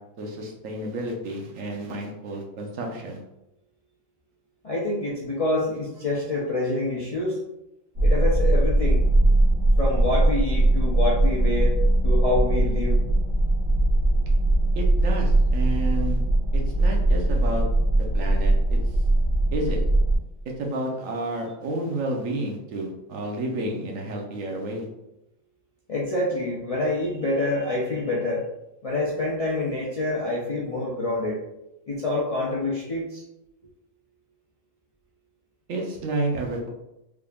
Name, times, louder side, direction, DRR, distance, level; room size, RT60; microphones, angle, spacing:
voice 1, 0.2-3.2 14.7-16.2 16.5-17.6 18.1-18.8 19.5-19.8 20.6-24.9 35.7-36.7, right 1 dB, 70° right, 1 dB, 1.1 m, -30 dB
voice 2, 4.6-7.4 8.0-9.1 9.8-11.8 12.0-13.0 25.9-28.5 28.8-31.4 31.9-33.2, left 2 dB, 60° left, -5 dB, 0.3 m, -26 dB
sound 1, 7.9-20.2, right 1 dB, 55° right, 1.1 m, -20 dB
3.6 x 3.5 x 2.3 m, 0.89 s
omnidirectional pair, 1.4 m